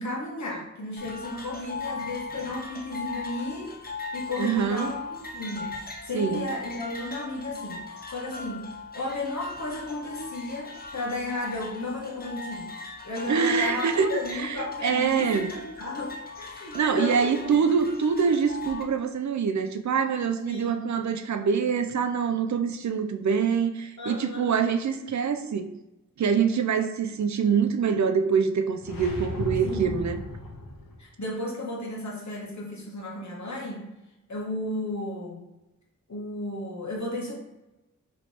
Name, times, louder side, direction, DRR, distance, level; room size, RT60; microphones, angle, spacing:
voice 1, 0.0-3.8 4.1-5.0 5.3-8.7 8.9-12.7 13.0-17.6 20.5-20.9 24.0-24.5 29.6-30.0 31.0-33.9 34.3-35.4 36.1-37.3, left 1 dB, 55° left, -2 dB, 1.3 m, -34 dB
sound 1, 1.0-18.8, left 4 dB, 30° left, 0.6 m, -39 dB
voice 2, 4.4-4.9 6.1-6.5 13.3-15.5 16.7-25.7 26.2-30.2, right 6 dB, 60° right, 7 dB, 0.5 m, -25 dB
sound 2, 28.8-31.0, left 2 dB, 85° left, 0.7 m, -35 dB
3.1 x 3.1 x 4.2 m, 0.96 s
cardioid pair, 45°, 33 cm